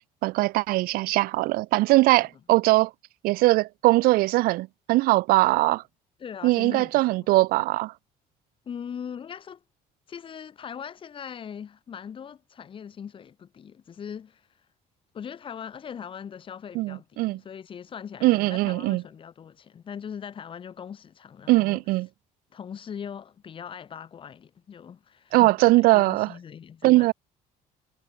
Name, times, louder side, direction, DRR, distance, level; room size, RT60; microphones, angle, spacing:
voice 1, 0.2-2.9 3.2-5.8 6.4-7.9 16.8-17.4 18.2-19.0 21.5-22.1 25.3-26.3 26.8-27.1, right 20 dB, 70° right, 0.4 m, -21 dB
voice 2, 6.2-7.3 8.7-9.6 10.1-14.5 15.1-21.8 22.5-27.1, left 7 dB, 35° left, 1.8 m, -40 dB
cardioid pair, 140°, 16 cm